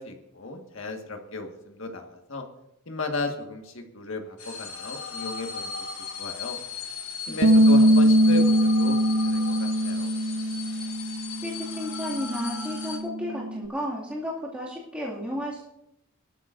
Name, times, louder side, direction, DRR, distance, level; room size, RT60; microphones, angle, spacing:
voice 1, 0.0-2.4 2.8-5.7 6.2-6.6 7.3-10.1, left 2 dB, 65° left, 3 dB, 1.7 m, -35 dB
sound 1, 4.4-13.0, left 6 dB, 85° left, 1.8 m, -37 dB
voice 2, 7.3-7.8 10.7-10.9 11.4-15.6, equal, 5° right, -7 dB, 2.3 m, -33 dB
Bass guitar, 7.4-13.7, equal, 55° right, 0.6 m, -22 dB
20.0 x 13.0 x 2.6 m, 0.83 s
head